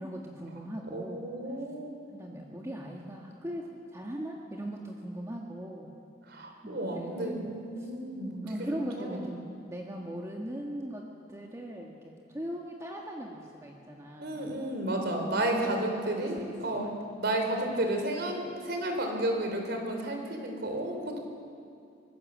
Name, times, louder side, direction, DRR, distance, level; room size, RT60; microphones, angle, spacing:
voice 1, 0.0-1.3 2.1-5.9 6.6-7.5 7.8-7.9 8.4-14.5 15.3-16.9 17.7-17.8, right 1 dB, 15° right, -1 dB, 1.8 m, -39 dB
voice 2, 0.9-1.9 6.3-8.7 9.0-9.2 14.2-16.9 17.2-21.2, right 1 dB, 65° right, 3 dB, 4.3 m, -32 dB
24.0 x 20.5 x 7.6 m, 2.5 s
head